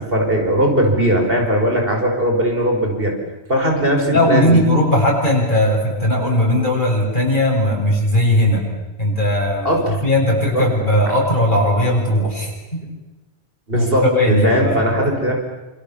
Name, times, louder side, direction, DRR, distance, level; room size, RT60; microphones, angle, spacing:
voice 1, 0.0-3.1 3.5-4.6 9.6-10.0 10.5-10.7 13.7-15.4, equal, 60° right, 2 dB, 5.7 m, -18 dB
voice 2, 4.1-8.6 9.0-12.8 13.7-15.1, left 1 dB, 50° left, -2 dB, 7.4 m, -18 dB
28.5 x 27.5 x 7.3 m, 1.1 s
omnidirectional pair, 1.1 m